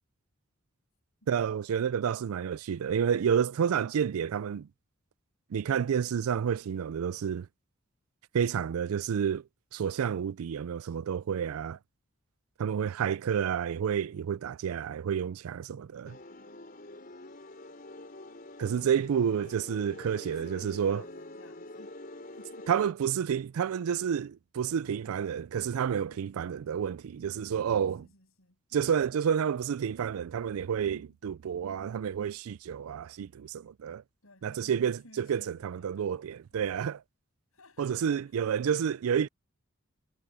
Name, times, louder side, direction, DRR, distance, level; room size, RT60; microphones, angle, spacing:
voice 1, 1.3-4.7 5.5-7.5 8.3-9.4 9.7-11.8 12.6-16.2 18.6-21.0 22.7-28.1 28.7-34.0 34.4-37.0 37.8-39.3, right 8 dB, 90° right, 0.4 m, -30 dB
sound 1, 16.1-22.9, left 2 dB, 40° left, 4.6 m, -46 dB
voice 2, 20.3-21.9 22.3-22.7 24.8-25.0 26.1-26.2 28.0-28.6 30.9-31.2 34.2-36.1 36.5-36.9 37.5-38.2 38.7-38.8, left 2 dB, 80° left, 7.8 m, -57 dB
head